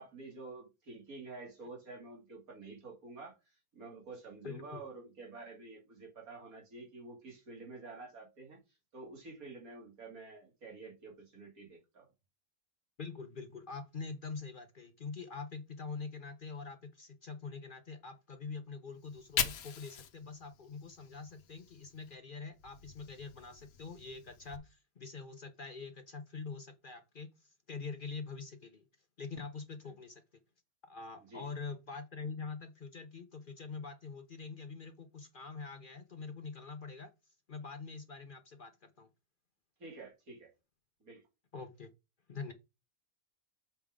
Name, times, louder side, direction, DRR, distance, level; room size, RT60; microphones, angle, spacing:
voice 1, 0.0-8.6 8.9-12.1 31.3-31.5 39.8-40.5 41.0-41.2, right 3 dB, 80° right, 2.7 m, -49 dB
voice 2, 4.4-4.8 13.0-28.8 29.2-30.2 30.9-37.1 37.5-39.1 41.5-41.9 42.3-42.5, left 4 dB, 45° left, 0.8 m, -45 dB
Fire, 19.0-22.1 22.5-24.6, left 9 dB, 90° left, 1.3 m, -41 dB
7.0 x 3.6 x 5.1 m
omnidirectional pair, 1.5 m